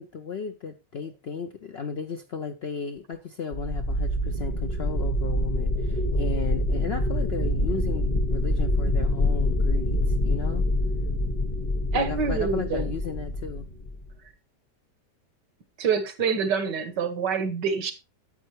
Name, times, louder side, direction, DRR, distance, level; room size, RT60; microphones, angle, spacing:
voice 1, 0.0-10.7 11.9-13.7, left 5 dB, 65° left, 0.6 m, -35 dB
sound 1, 3.5-14.1, left 1 dB, 35° left, 1.1 m, -26 dB
voice 2, 11.9-12.9 15.8-17.9, right 6 dB, 85° right, 2.0 m, -26 dB
10.0 x 7.8 x 3.1 m
omnidirectional pair, 1.8 m